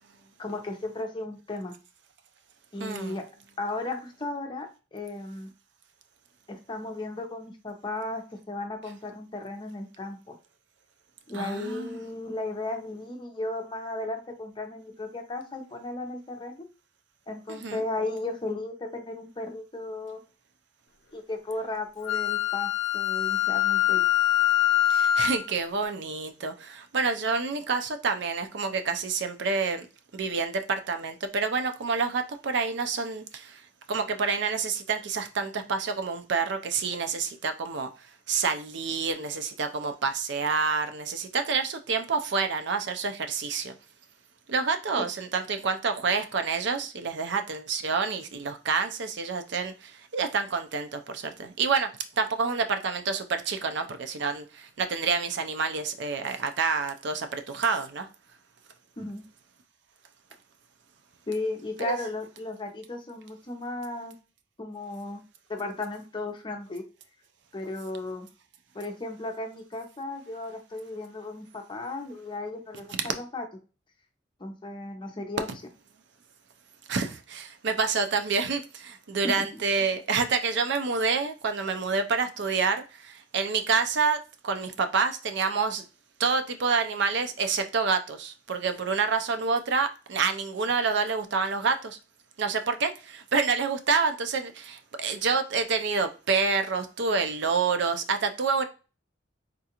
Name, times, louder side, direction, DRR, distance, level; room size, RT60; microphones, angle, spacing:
voice 1, 0.4-1.7 2.7-3.2 3.6-5.5 6.5-10.3 11.3-16.7 17.3-20.2 21.1-24.0 45.0-45.1 59.0-59.2 61.3-64.1 64.6-65.2 65.5-66.8 67.5-68.3 68.7-73.4 74.4-75.5 79.2-79.3, left 2 dB, 25° left, 4 dB, 0.7 m, -35 dB
voice 2, 2.8-3.2 11.3-12.0 17.5-17.8 24.9-29.9 30.1-33.6 33.9-37.9 38.3-43.7 44.5-51.9 52.2-58.1 61.8-62.0 76.9-85.8 86.2-92.0 92.4-98.6, right 5 dB, 65° right, 8 dB, 0.5 m, -28 dB
Wind instrument woodwind instrument, 22.1-25.4, left 11 dB, 85° left, 0.5 m, -24 dB
3.7 x 2.4 x 2.8 m, 0.32 s
head